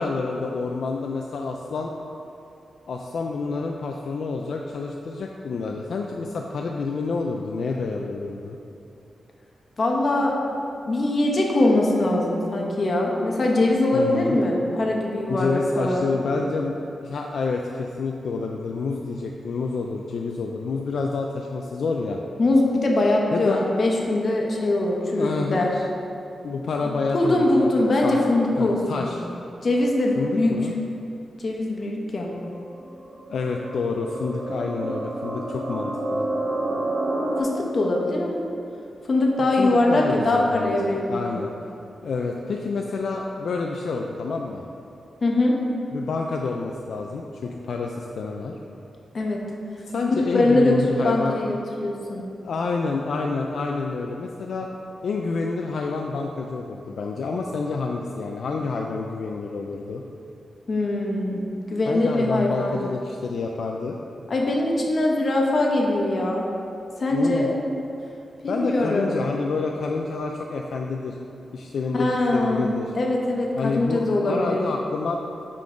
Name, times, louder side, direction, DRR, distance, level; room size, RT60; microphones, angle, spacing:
voice 1, 0.0-2.0 2.9-8.6 13.9-14.4 15.3-16.8 17.0-22.2 23.3-23.6 25.2-25.7 26.4-27.7 28.0-28.2 28.6-29.2 30.2-30.7 33.3-36.3 39.6-41.5 42.0-44.6 45.9-48.5 49.9-51.4 52.4-54.7 55.0-60.0 61.9-64.0 67.1-67.5 68.5-71.2 71.5-72.9 73.6-75.2, left 4 dB, 75° left, 1 dB, 0.3 m, -28 dB
voice 2, 9.8-10.4 10.9-16.1 22.4-25.7 27.1-29.1 29.6-30.5 31.4-32.3 37.4-38.4 39.0-41.4 45.2-45.5 49.1-49.4 50.3-52.2 60.7-61.4 61.7-62.8 64.3-66.4 67.0-67.5 68.4-69.1 71.9-74.6, left 2 dB, 50° left, -1 dB, 0.9 m, -22 dB
sound 1, 32.3-37.4, right 1 dB, 35° right, 0.8 m, -29 dB
5.7 x 3.7 x 4.9 m, 2.7 s
cardioid pair, 90°, 0 cm